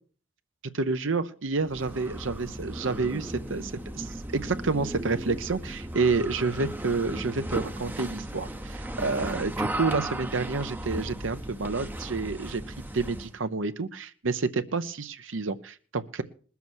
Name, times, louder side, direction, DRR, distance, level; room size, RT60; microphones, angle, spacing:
voice 1, 0.8-12.6 12.9-16.2, right 4 dB, 70° right, 10 dB, 0.8 m, -29 dB
sound 1, 1.6-13.4, right 1 dB, 10° right, 0.7 m, -36 dB
20.0 x 7.1 x 6.2 m, 0.42 s
head